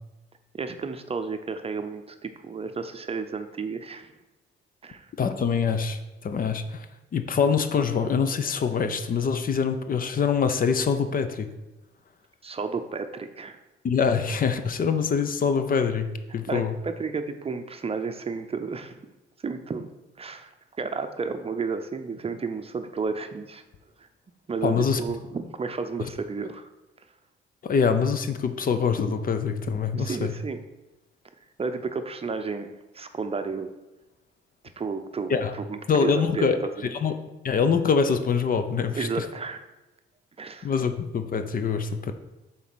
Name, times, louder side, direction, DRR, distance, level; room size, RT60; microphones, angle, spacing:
voice 1, 0.5-4.1 4.8-5.1 12.4-13.6 16.5-18.9 19.4-19.9 20.2-23.6 24.0-24.1 24.5-26.7 30.0-30.6 31.6-33.7 34.8-36.9 39.0-39.6 40.4-40.7, right 4 dB, 30° right, 8 dB, 0.6 m, -32 dB
voice 2, 5.2-6.9 7.1-11.5 13.8-16.1 16.3-16.7 24.6-25.0 27.6-30.3 35.3-35.5 35.9-36.6 36.9-37.1 37.4-39.2 40.6-42.1, left 6 dB, 45° left, 9 dB, 0.7 m, -24 dB
7.0 x 4.0 x 6.1 m, 1.0 s
cardioid pair, 90°, 20 cm